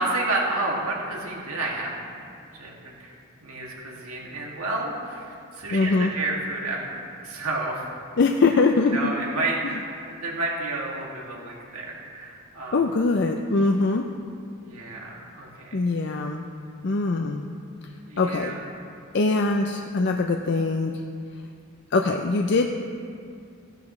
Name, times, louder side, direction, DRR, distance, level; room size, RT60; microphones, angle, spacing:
voice 1, 0.0-7.9 8.9-12.8 14.6-15.8 18.1-18.6, right 2 dB, 90° right, -3 dB, 2.3 m, -31 dB
voice 2, 5.7-6.1 8.2-9.1 9.6-9.7 12.7-14.1 15.7-16.4 16.8-17.6 17.8-18.5 19.1-21.0 21.9-22.7, left 3 dB, 55° left, 3 dB, 0.5 m, -23 dB
16.5 x 10.5 x 3.2 m, 2.3 s
head